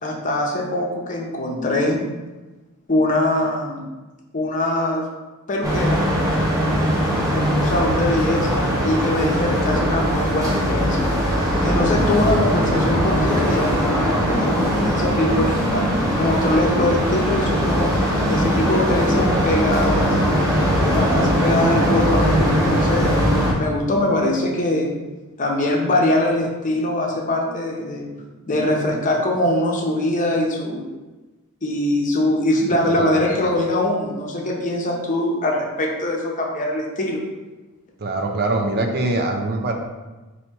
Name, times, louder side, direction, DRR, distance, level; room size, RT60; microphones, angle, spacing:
voice 1, 0.0-2.0 2.9-3.8 4.3-5.1 5.5-6.0 7.3-11.0 11.6-15.9 16.1-17.9 18.3-20.2 20.8-23.1 23.5-24.9 25.4-28.1 28.4-30.8 31.6-37.2, left 1 dB, 35° left, -1 dB, 0.7 m, -22 dB
sound 1, 5.6-23.5, equal, 15° right, 1.2 m, -20 dB
voice 2, 32.7-33.6 38.0-39.7, right 2 dB, 45° right, 2 dB, 0.6 m, -24 dB
4.3 x 2.8 x 4.5 m, 1.2 s
head